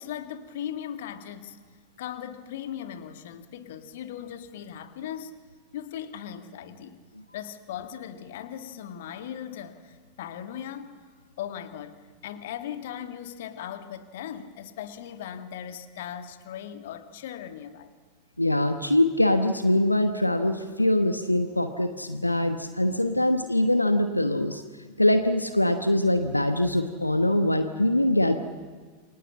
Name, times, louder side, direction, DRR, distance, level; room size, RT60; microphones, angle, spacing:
voice 1, 0.0-1.6 2.0-5.3 5.7-7.0 7.3-10.9 11.4-12.0 12.2-17.9, left 9 dB, 55° left, 8 dB, 1.8 m, -38 dB
voice 2, 18.4-24.6 25.0-28.4, left 1 dB, 85° left, 8 dB, 1.1 m, -23 dB
28.5 x 24.5 x 7.5 m, 1.5 s
figure-of-eight pair, 90°, 0 cm